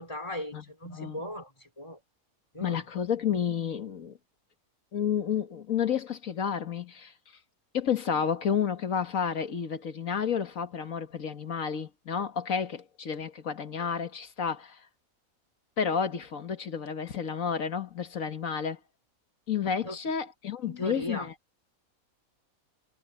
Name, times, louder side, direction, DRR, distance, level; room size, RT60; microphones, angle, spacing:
voice 1, 0.0-2.0 2.5-2.8 19.8-20.0 20.6-21.3, left 1 dB, 20° left, 5.2 m, -38 dB
voice 2, 0.5-1.2 2.6-4.2 4.9-7.1 7.7-14.8 15.8-18.8 19.5-21.3, left 7 dB, 70° left, 1.9 m, -31 dB
omnidirectional pair, 1.5 m